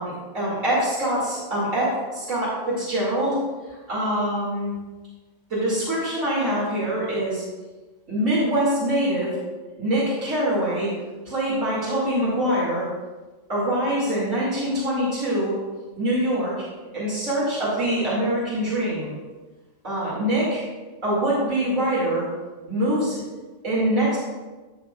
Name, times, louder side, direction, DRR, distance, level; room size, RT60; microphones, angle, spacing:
voice 1, 0.0-3.4 3.9-4.7 5.5-7.4 8.1-9.3 9.8-10.9 11.2-12.8 13.5-15.5 16.0-16.5 16.9-19.1 19.8-20.6 21.0-22.3 22.7-23.2 23.6-24.2, right 1 dB, 85° right, -9 dB, 3.1 m, -24 dB
13.0 x 7.1 x 2.5 m, 1.2 s
omnidirectional pair, 1.3 m